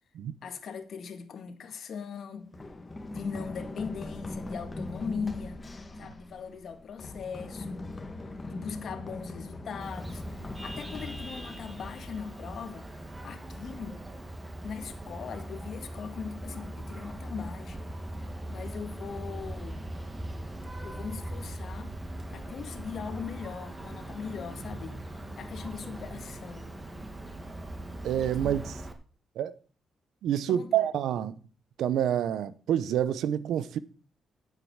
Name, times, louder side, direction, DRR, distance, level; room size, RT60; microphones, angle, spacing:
voice 1, 0.4-2.6 3.1-5.6 6.0-7.8 8.5-14.0 14.6-17.9 18.5-19.9 20.8-21.9 22.3-25.0 25.4-26.7 28.4-28.5 30.5-30.9, left 6 dB, 60° left, 1.9 m, -40 dB
Run, 2.5-12.3, left 2 dB, 20° left, 1.4 m, -40 dB
Vehicle horn car horn honking, 9.8-28.9, right 1 dB, 15° right, 2.1 m, -40 dB
voice 2, 28.0-28.7 29.4-29.5 30.2-31.3 31.8-33.8, right 10 dB, 85° right, 0.9 m, -28 dB
10.5 x 7.8 x 7.2 m
cardioid pair, 110°, 0 cm